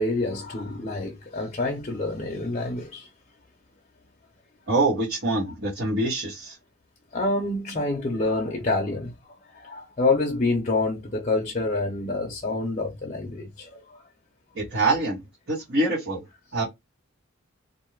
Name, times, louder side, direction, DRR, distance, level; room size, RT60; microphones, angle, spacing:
voice 1, 0.0-3.1 7.1-9.1 9.5-14.1, left 2 dB, 35° left, 0.6 m, -27 dB
voice 2, 4.7-6.6 14.5-15.2 15.5-16.2 16.5-16.6, right 2 dB, 65° right, 1.3 m, -25 dB
2.6 x 2.3 x 3.0 m
head